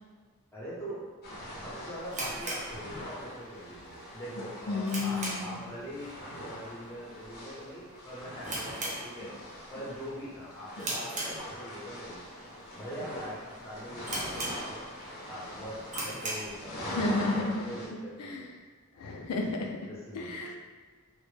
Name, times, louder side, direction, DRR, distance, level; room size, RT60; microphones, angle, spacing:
voice 1, 0.5-1.1 1.5-3.8 4.1-6.1 6.4-9.3 9.7-12.2 12.8-14.8 15.3-18.4 19.9-20.4, equal, 10° left, -8 dB, 0.7 m, -42 dB
sound 1, 1.2-17.9, equal, 45° left, 0.6 m, -43 dB
sound 2, 2.1-3.4 3.7-3.8 4.3-5.7 6.0-6.3 6.6-6.7 7.3-7.6 7.9-8.0 8.4-9.6 9.9-10.2 10.8-11.9 12.5-12.6 13.1-13.2 13.5-13.6 14.0-15.0 15.4-15.5 15.8-16.6, right 1 dB, 35° right, 0.5 m, -37 dB
voice 2, 4.4-5.6 16.8-17.6 18.2-18.5 19.0-19.8 20.1-20.6, left 3 dB, 90° left, 1 dB, 0.4 m, -32 dB
2.1 x 2.0 x 3.1 m, 1.5 s
head